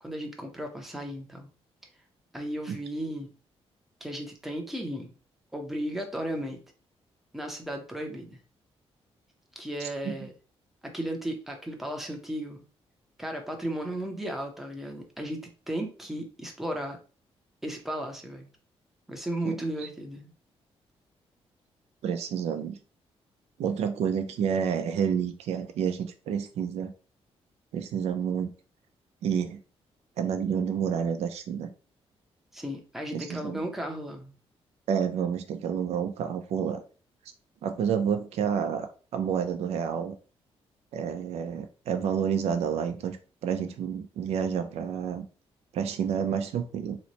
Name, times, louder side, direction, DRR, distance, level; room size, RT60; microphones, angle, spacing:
voice 1, 0.0-1.5 2.3-3.3 4.0-5.1 5.5-6.6 7.3-8.4 9.6-10.3 10.8-12.6 13.2-17.0 17.6-18.5 19.1-20.3 32.5-34.3, right 1 dB, 5° right, 0.6 m, -35 dB
voice 2, 22.0-22.8 23.6-26.9 27.7-28.5 29.2-29.6 30.2-31.7 33.1-33.6 34.9-36.8 37.6-40.1 40.9-43.2 43.4-45.2 45.7-47.0, right 7 dB, 85° right, 0.5 m, -29 dB
3.0 x 2.1 x 3.9 m
wide cardioid pair, 160°, 11 cm